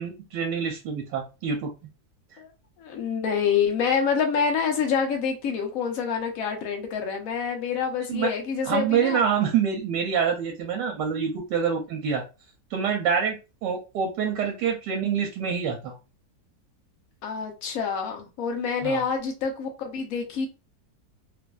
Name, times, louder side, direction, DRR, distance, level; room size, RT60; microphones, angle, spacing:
voice 1, 0.0-1.7 8.1-8.3 8.7-12.2 12.7-13.4 13.6-16.0 18.8-19.0, right 7 dB, 85° right, 1.3 m, -26 dB
voice 2, 2.8-9.2 17.2-20.5, left 6 dB, 65° left, 1.0 m, -27 dB
3.1 x 2.5 x 2.3 m
omnidirectional pair, 1.8 m